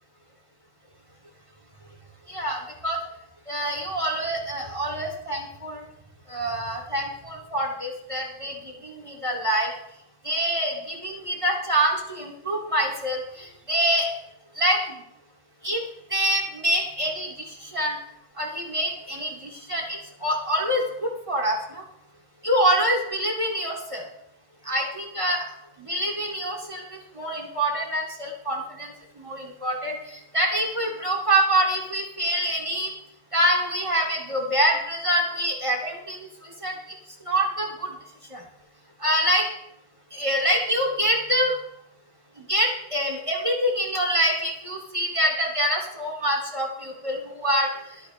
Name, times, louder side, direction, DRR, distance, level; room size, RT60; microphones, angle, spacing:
voice 1, 2.3-3.0 3.5-5.8 6.3-8.5 8.8-9.7 10.2-14.1 14.5-14.8 15.6-15.8 16.1-18.0 18.4-21.8 22.4-24.0 24.6-25.4 25.8-32.9 33.3-36.7 37.2-37.9 38.3-38.4 39.0-39.5 40.1-41.5 42.5-47.7, right 1 dB, 20° right, 0 dB, 0.7 m, -25 dB
23.0 x 8.6 x 3.1 m, 0.80 s
omnidirectional pair, 4.6 m